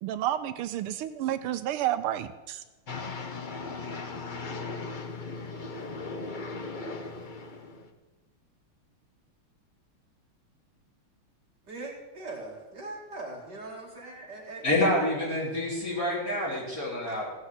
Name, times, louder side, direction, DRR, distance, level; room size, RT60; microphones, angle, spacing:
voice 1, 0.0-2.6, right 12 dB, 85° right, 1.6 m, -30 dB
sound 1, 2.9-7.9, left 3 dB, 60° left, 0.5 m, -37 dB
voice 2, 11.6-14.9 17.1-17.3, right 2 dB, 50° right, 2.9 m, -41 dB
voice 3, 14.6-17.3, left 1 dB, 40° left, 4.1 m, -27 dB
15.5 x 6.3 x 8.0 m
omnidirectional pair, 2.4 m